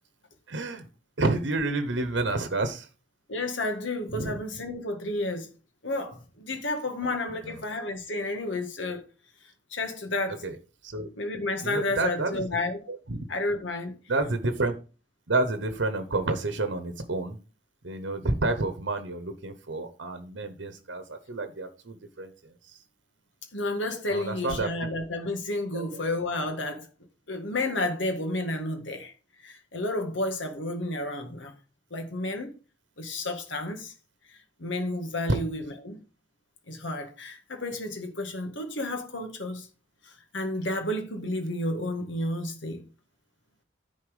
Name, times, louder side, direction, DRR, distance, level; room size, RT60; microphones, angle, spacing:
voice 1, 0.5-0.8 1.2-2.9 4.1-4.4 10.4-10.5 10.8-11.1 11.6-12.4 13.1-13.2 14.1-14.7 15.3-17.4 17.8-22.3 22.7-22.8 24.1-24.7 25.7-25.9, right 2 dB, 70° right, 1.0 m, -29 dB
voice 2, 3.3-5.5 5.8-9.0 9.7-10.4 11.2-12.8 13.3-14.0 23.5-26.9 27.3-29.1 29.4-31.5 31.9-32.5 33.0-33.9 34.6-36.0 36.7-39.7 40.0-42.8, left 2 dB, 75° left, 1.7 m, -31 dB
10.0 x 4.2 x 5.0 m
head